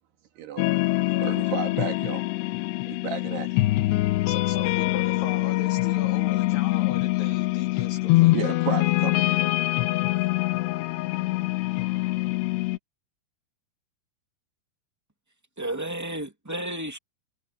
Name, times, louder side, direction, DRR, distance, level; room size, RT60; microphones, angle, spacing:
voice 1, 0.4-0.7 1.2-2.3 2.9-3.6 8.3-9.5, right 9 dB, 75° right, 4.2 m, -33 dB
sound 1, 0.6-12.8, left 19 dB, 90° left, 3.0 m, -24 dB
voice 2, 4.3-8.6, left 7 dB, 75° left, 5.8 m, -39 dB
voice 3, 15.6-17.0, right 1 dB, 10° right, 1.1 m, -32 dB
omnidirectional pair, 4.7 m